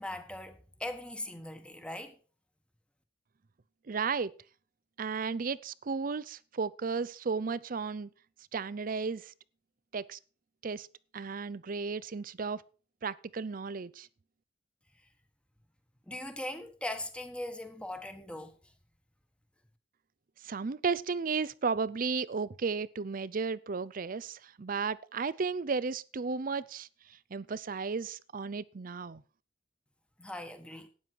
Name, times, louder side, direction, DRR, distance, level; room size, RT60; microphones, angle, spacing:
voice 1, 0.0-2.1 16.1-18.5 30.2-30.9, left 1 dB, 5° left, 1.4 m, -40 dB
voice 2, 3.9-4.3 5.0-8.1 8.5-9.3 9.9-10.2 10.6-10.9 11.1-12.6 13.0-14.1 20.4-26.9 27.3-29.2, right 5 dB, 50° right, 0.5 m, -34 dB
12.5 x 9.5 x 4.6 m
head